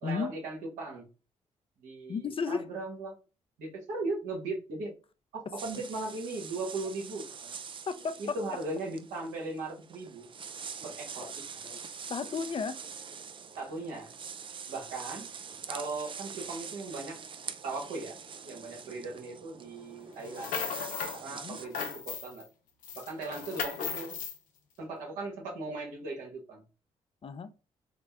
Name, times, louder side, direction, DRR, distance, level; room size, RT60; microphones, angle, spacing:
voice 1, 0.0-1.1 1.8-3.2 3.6-4.9 5.3-7.6 8.2-10.3 10.8-11.6 13.6-14.1 14.7-15.3 15.7-17.2 17.6-18.2 18.4-20.5 21.1-22.4 22.9-24.2 24.8-26.6, right 3 dB, 85° right, 1.3 m, -38 dB
voice 2, 2.1-2.7 7.9-8.5 11.2-11.3 11.6-11.8 12.1-12.8 21.4-21.6 27.2-27.5, left 5 dB, 40° left, 0.5 m, -33 dB
sound 1, 5.6-21.7, right 6 dB, 40° right, 0.4 m, -45 dB
sound 2, 20.2-21.2 21.5-22.5 22.8-24.4, left 6 dB, 80° left, 0.7 m, -36 dB
3.8 x 2.0 x 3.4 m
supercardioid pair, 55°, 14 cm